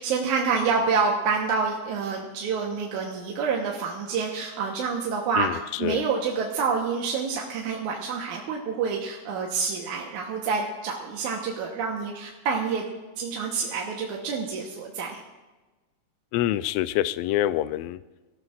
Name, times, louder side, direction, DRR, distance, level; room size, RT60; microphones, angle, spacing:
voice 1, 0.0-12.9 13.2-15.2, right 5 dB, 80° right, -1 dB, 2.6 m, -27 dB
voice 2, 5.4-6.0 16.3-18.0, left 13 dB, 85° left, 14 dB, 1.4 m, -26 dB
23.5 x 14.0 x 2.5 m, 1.2 s
omnidirectional pair, 3.4 m